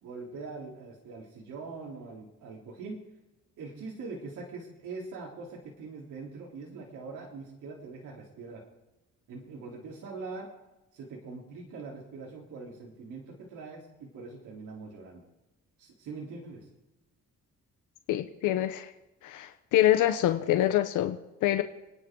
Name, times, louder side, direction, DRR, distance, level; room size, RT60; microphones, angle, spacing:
voice 1, 0.0-3.0 3.6-8.6 9.3-10.5 10.9-15.3 15.8-16.7, right 4 dB, 80° right, -3 dB, 3.8 m, -42 dB
voice 2, 18.1-18.9 19.2-21.6, left 12 dB, 90° left, 8 dB, 1.0 m, -26 dB
29.5 x 10.5 x 3.9 m, 1.0 s
cardioid pair, 90°, 30 cm